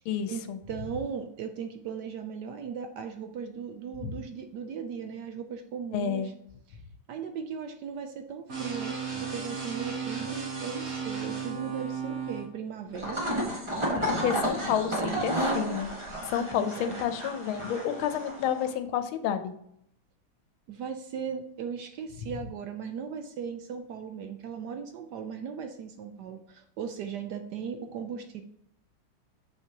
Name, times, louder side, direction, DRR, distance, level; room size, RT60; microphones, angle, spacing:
voice 1, 0.1-0.6 4.0-4.2 5.9-6.3 14.1-15.9 16.3-19.5, left 9 dB, 85° left, 10 dB, 1.5 m, -30 dB
voice 2, 0.7-6.3 6.7-6.8 7.1-13.3 13.8-14.4 16.4-17.1 20.7-28.4, right 6 dB, 70° right, 6 dB, 1.0 m, -38 dB
sound 1, 8.5-12.5, right 6 dB, 40° right, 1.9 m, -34 dB
sound 2, 12.9-18.7, equal, 15° right, 1.2 m, -32 dB
6.4 x 5.9 x 2.9 m, 0.74 s
omnidirectional pair, 2.2 m